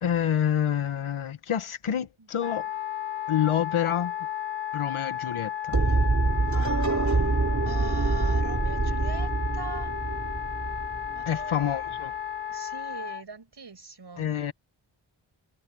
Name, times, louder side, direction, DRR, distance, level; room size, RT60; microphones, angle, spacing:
voice 1, 0.0-2.7 3.3-4.1 4.7-5.8 11.3-12.1 14.2-14.5, left 9 dB, 90° left, 1.5 m, -27 dB
Wind instrument woodwind instrument, 2.4-13.2, left 10 dB, 60° left, 1.8 m, -34 dB
sound 1, 5.7-11.7, right 3 dB, 35° right, 2.9 m, -26 dB
voice 2, 7.7-10.0 11.1-11.8 12.5-14.3, right 4 dB, 55° right, 6.0 m, -42 dB
cardioid pair, 45°, 48 cm